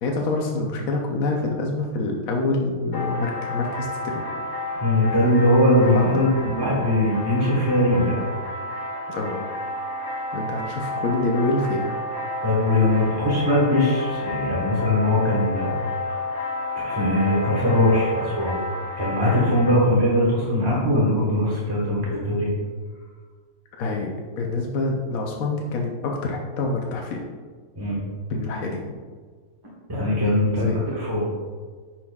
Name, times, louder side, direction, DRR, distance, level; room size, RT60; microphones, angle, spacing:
voice 1, 0.0-4.2 5.9-6.5 9.1-9.4 10.3-11.9 19.6-19.8 23.8-27.2 28.3-28.8 30.4-30.9, left 2 dB, 75° left, 0 dB, 1.1 m, -26 dB
sound 1, 2.9-19.8, left 2 dB, 35° left, 1.6 m, -31 dB
voice 2, 4.8-8.2 12.4-15.8 16.7-18.6 19.0-22.5 27.7-28.0 29.9-30.7 30.9-31.3, left 1 dB, 15° right, -6 dB, 1.1 m, -21 dB
10.5 x 4.3 x 2.3 m, 1.5 s
omnidirectional pair, 1.5 m